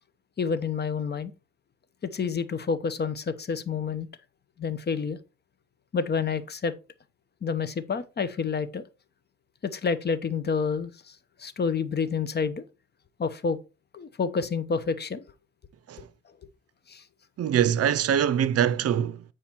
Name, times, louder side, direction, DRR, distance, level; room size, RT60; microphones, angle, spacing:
voice 1, 0.4-1.3 2.0-4.1 4.6-5.2 5.9-6.7 7.4-8.8 9.6-12.6 13.2-13.6 13.9-15.2 16.0-16.1 16.9-17.0, left 5 dB, 35° left, 0.9 m, -29 dB
voice 2, 17.4-19.2, right 9 dB, 55° right, 0.6 m, -23 dB
8.9 x 4.9 x 4.4 m
cardioid pair, 105°, 29 cm